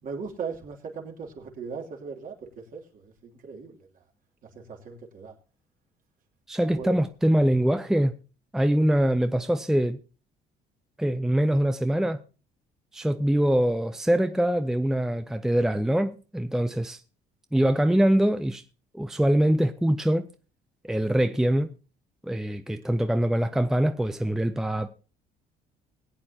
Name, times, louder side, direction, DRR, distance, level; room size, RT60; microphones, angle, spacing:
voice 1, 0.0-4.0 4.4-5.3 6.7-7.0, right 5 dB, 55° right, 2.9 m, -38 dB
voice 2, 6.5-8.1 8.5-10.0 11.0-12.2 12.9-17.0 17.5-18.6 18.9-20.2 20.8-21.7 22.2-24.9, right 1 dB, 5° right, 0.6 m, -23 dB
21.0 x 8.7 x 2.8 m
cardioid pair, 110°, 17 cm